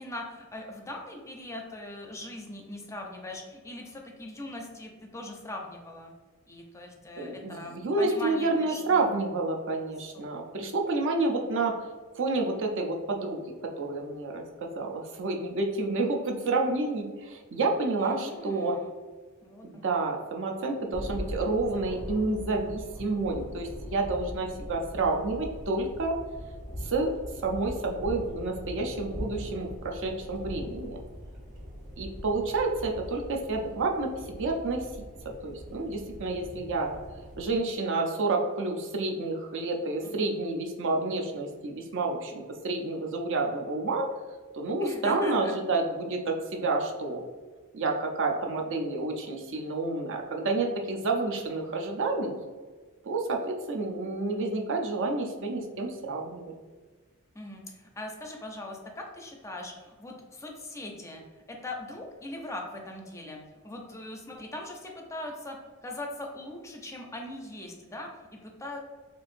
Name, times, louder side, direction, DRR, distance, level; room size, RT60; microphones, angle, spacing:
voice 1, 0.0-6.1 6.5-9.1 10.1-10.2 10.5-10.6 18.0-18.9 19.4-19.9 40.0-40.3 44.8-45.5 57.3-61.2 61.5-65.6 65.8-68.8, left 1 dB, 15° left, 1 dB, 0.4 m, -40 dB
voice 2, 7.2-11.7 12.2-18.7 19.6-26.2 26.8-27.1 27.4-31.0 32.0-34.9 35.3-36.9 37.4-44.1 44.5-47.2 47.7-52.3 53.1-56.5, right 3 dB, 60° right, 2 dB, 0.5 m, -29 dB
Thunder, 20.9-37.6, equal, 35° right, 1.1 m, -41 dB
4.5 x 2.5 x 2.5 m, 1.4 s
head